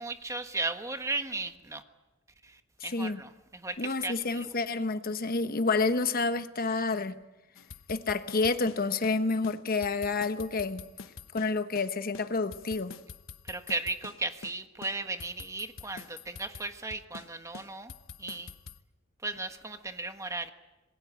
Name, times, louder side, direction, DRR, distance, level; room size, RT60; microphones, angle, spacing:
voice 1, 0.0-1.8 2.4-4.5 13.4-17.9 18.2-18.5 19.2-20.5, right 3 dB, 15° right, 8 dB, 1.4 m, -36 dB
voice 2, 2.8-3.2 3.8-7.2 7.9-10.8 11.3-12.9, left 3 dB, 45° left, 10 dB, 1.1 m, -29 dB
sound 1, 7.6-9.2 9.4-9.6 9.8-11.9 12.1-14.2 14.4-14.6 14.8-17.3 17.5-18.8, left 5 dB, 90° left, 1.0 m, -46 dB
27.0 x 20.5 x 8.6 m, 1.0 s
head